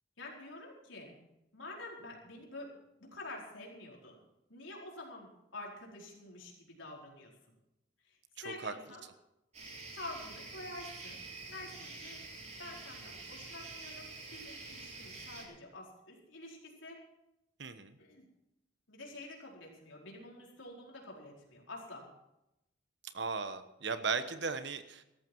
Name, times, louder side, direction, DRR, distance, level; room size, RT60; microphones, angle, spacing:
voice 1, 0.2-1.2 1.5-2.7 3.0-4.2 4.5-7.3 8.0-9.1 9.9-11.2 11.5-12.2 12.6-17.0 18.0-18.3 18.9-22.1, left 2 dB, 80° left, -2 dB, 4.7 m, -48 dB
sound 1, 9.5-15.4, right 3 dB, 35° right, 3.8 m, -47 dB
voice 2, 17.6-18.0 23.1-25.0, right 4 dB, 60° right, 10 dB, 1.2 m, -37 dB
17.5 x 14.0 x 4.7 m, 0.88 s
head